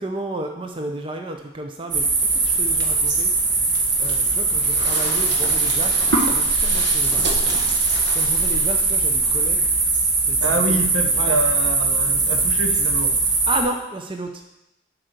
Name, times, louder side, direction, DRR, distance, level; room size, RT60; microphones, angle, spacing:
voice 1, 0.0-2.1 2.4-3.3 4.0-7.5 8.1-9.7 10.2-10.8 11.2-11.4 13.5-14.4, right 1 dB, 25° right, 4 dB, 0.5 m, -32 dB
sound 1, 1.9-13.6, right 3 dB, 60° right, 1.4 m, -20 dB
voice 2, 10.4-13.2, right 2 dB, 75° right, 5 dB, 0.9 m, -26 dB
7.6 x 4.6 x 6.6 m, 0.88 s
head